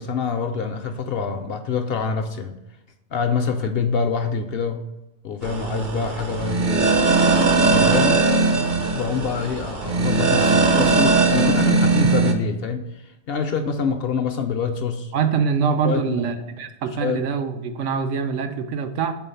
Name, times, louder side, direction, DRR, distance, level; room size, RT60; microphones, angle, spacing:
voice 1, 0.0-2.6 3.1-4.9 5.2-7.0 7.6-8.3 8.9-15.1 15.8-16.3 16.9-17.2, left 5 dB, 65° left, 7 dB, 0.7 m, -25 dB
sound 1, 5.4-12.3, right 3 dB, 50° right, 0.8 m, -19 dB
voice 2, 15.1-19.1, right 6 dB, 75° right, 7 dB, 1.0 m, -24 dB
4.5 x 3.8 x 5.5 m, 0.95 s
omnidirectional pair, 1.3 m